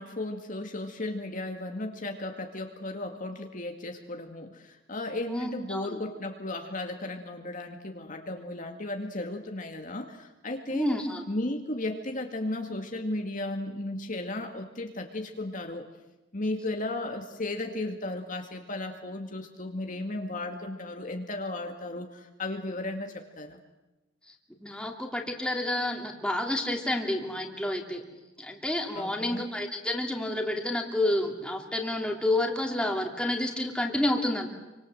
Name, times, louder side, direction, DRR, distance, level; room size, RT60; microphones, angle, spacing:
voice 1, 0.0-11.0 11.3-15.8 16.3-23.6 28.9-29.5, left 2 dB, 45° left, 4 dB, 2.1 m, -35 dB
voice 2, 5.3-5.9 10.7-11.2 24.6-28.0 28.4-34.5, left 1 dB, 5° left, 2 dB, 3.0 m, -29 dB
27.5 x 25.0 x 7.8 m, 1.0 s
head